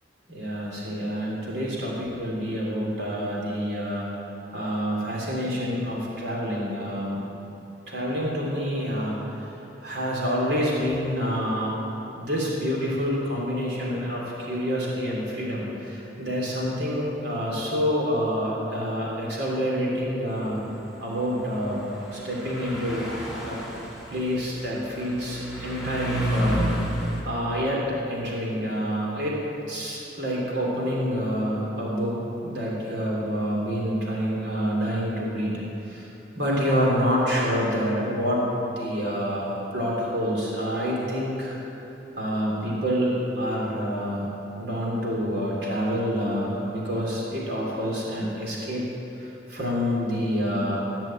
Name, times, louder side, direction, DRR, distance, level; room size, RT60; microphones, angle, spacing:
voice 1, 0.3-4.1 4.5-7.2 7.9-9.5 9.8-11.7 12.1-20.6 21.0-23.1 23.4-23.6 24.1-29.4 29.7-32.2 32.4-36.1 36.4-41.6 42.2-44.3 44.6-48.8 49.1-50.8, equal, 65° right, -4 dB, 3.1 m, -27 dB
sound 1, 21.5-21.6 22.1-27.2, equal, 5° right, 2.8 m, -30 dB
16.5 x 6.1 x 8.9 m, 3.0 s
head